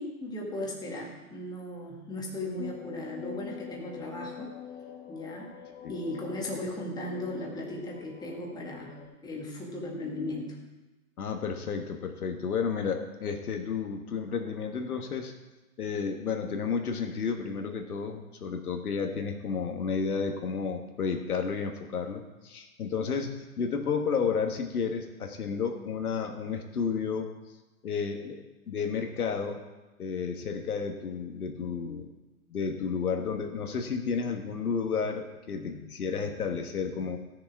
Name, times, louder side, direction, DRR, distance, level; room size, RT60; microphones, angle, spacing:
voice 1, 0.0-4.5 5.1-5.6 5.9-9.0 9.2-10.6, left 1 dB, 10° left, -2 dB, 1.7 m, -37 dB
sound 1, 2.6-9.0, left 9 dB, 25° left, 1.3 m, -44 dB
voice 2, 11.2-15.3 15.8-27.3 27.8-28.4 28.7-29.6 30.0-32.1 32.5-37.2, left 5 dB, 80° left, 4 dB, 1.6 m, -32 dB
15.0 x 6.8 x 4.7 m, 1.1 s
hypercardioid pair, 130°, 44 cm